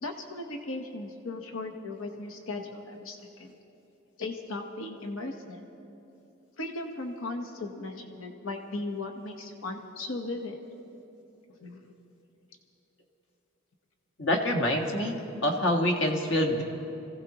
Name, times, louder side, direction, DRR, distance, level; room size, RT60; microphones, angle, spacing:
voice 1, 0.0-3.5 4.2-5.6 6.6-10.6 11.6-11.9, left 2 dB, 75° left, 3 dB, 1.1 m, -37 dB
voice 2, 14.2-16.6, left 1 dB, 60° left, 2 dB, 1.6 m, -26 dB
26.0 x 16.5 x 3.0 m, 3.0 s
head